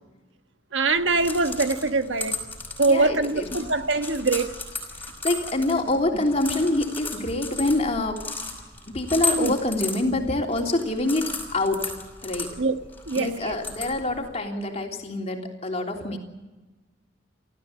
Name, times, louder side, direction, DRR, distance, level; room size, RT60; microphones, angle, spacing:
voice 1, 0.7-2.4 2.8-4.6 9.3-9.5 12.6-12.8 13.1-13.6, right 3 dB, 85° right, 1.5 m, -23 dB
sound 1, 1.0-14.3, left 3 dB, 10° left, 5.5 m, -35 dB
voice 2, 2.9-3.5 5.0-8.2 8.9-11.3 11.5-11.9 12.2-12.5 13.2-16.2, left 2 dB, 35° left, 3.3 m, -26 dB
29.5 x 14.0 x 8.7 m
head